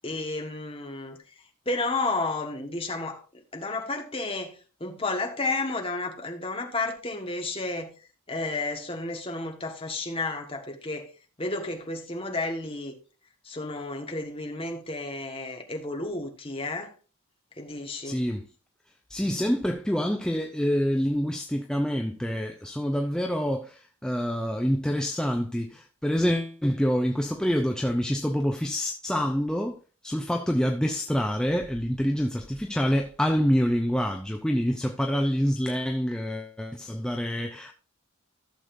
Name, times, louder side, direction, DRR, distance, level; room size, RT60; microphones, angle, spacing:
voice 1, 0.0-1.2 1.6-3.2 3.5-4.5 4.8-7.9 8.3-11.1 11.4-12.9 13.4-16.9 17.6-18.2, left 2 dB, 25° left, 1.4 m, -32 dB
voice 2, 18.0-18.5 19.1-29.8 30.0-37.7, equal, 5° left, 0.5 m, -26 dB
14.5 x 6.7 x 2.6 m
head